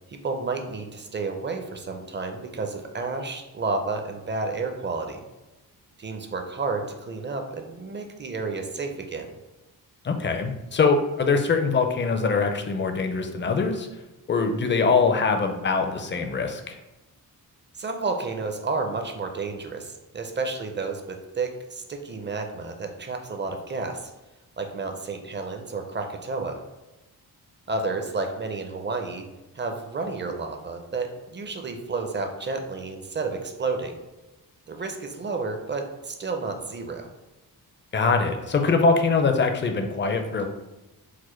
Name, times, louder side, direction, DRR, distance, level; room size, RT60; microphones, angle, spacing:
voice 1, 0.1-5.2 6.0-9.3 17.7-24.1 24.6-26.6 27.7-29.2 29.5-34.0 34.7-37.1, right 3 dB, 30° right, 4 dB, 0.5 m, -31 dB
voice 2, 10.0-13.9 14.3-16.8 37.9-40.5, left 4 dB, 30° left, 5 dB, 0.4 m, -23 dB
4.9 x 2.1 x 4.3 m, 1.0 s
wide cardioid pair, 145°, 39 cm